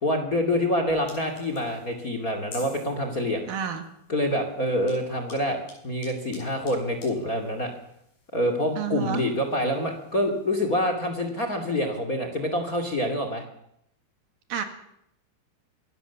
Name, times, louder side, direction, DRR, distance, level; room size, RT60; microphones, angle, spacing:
voice 1, 0.0-3.5 4.1-5.6 5.8-7.7 8.3-13.4, left 1 dB, 25° left, 6 dB, 2.4 m, -26 dB
sound 1, 0.9-10.6, left 3 dB, 75° left, 8.3 m, -51 dB
voice 2, 3.5-3.8 8.8-9.2 14.5-14.6, right 8 dB, 70° right, 7 dB, 3.6 m, -29 dB
25.0 x 17.5 x 7.1 m, 0.77 s
omnidirectional pair, 4.6 m